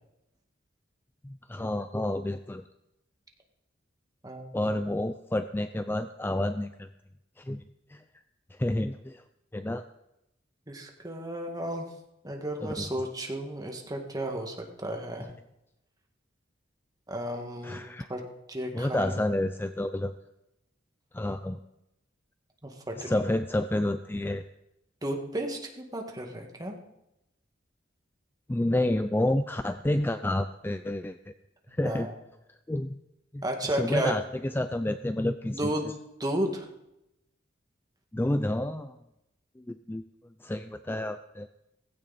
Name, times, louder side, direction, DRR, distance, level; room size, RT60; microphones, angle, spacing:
voice 1, 1.2-2.6 4.5-6.9 7.4-7.6 7.9-8.0 8.5-9.2 9.5-9.8 12.6-12.9 17.6-18.1 18.7-20.2 21.1-21.6 23.0-24.4 28.5-31.2 31.7-32.1 32.7-33.0 33.3-33.4 33.7-35.7 38.1-38.9 39.6-40.0 40.4-41.5, left 1 dB, 10° left, 10 dB, 0.4 m, -29 dB
voice 2, 4.2-4.7 10.7-11.9 12.2-15.3 17.1-18.2 18.5-19.2 22.6-23.2 25.0-26.8 31.7-32.2 33.4-34.2 35.5-35.9 36.2-36.7, right 1 dB, 20° right, 2 dB, 2.0 m, -33 dB
17.0 x 16.0 x 4.2 m, 0.87 s
head